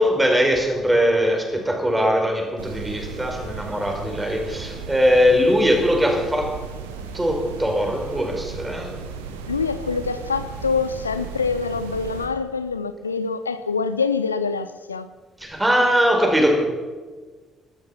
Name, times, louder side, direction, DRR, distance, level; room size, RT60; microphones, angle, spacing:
voice 1, 0.0-6.6 7.1-8.9 15.4-16.5, equal, 10° right, 4.8 m, -20 dB
sound 1, 2.6-12.3, right 5 dB, 75° right, 1.3 m, -35 dB
voice 2, 9.5-15.1, left 5 dB, 85° left, 0.4 m, -25 dB
16.5 x 13.0 x 5.8 m
figure-of-eight pair, 45°, 0 cm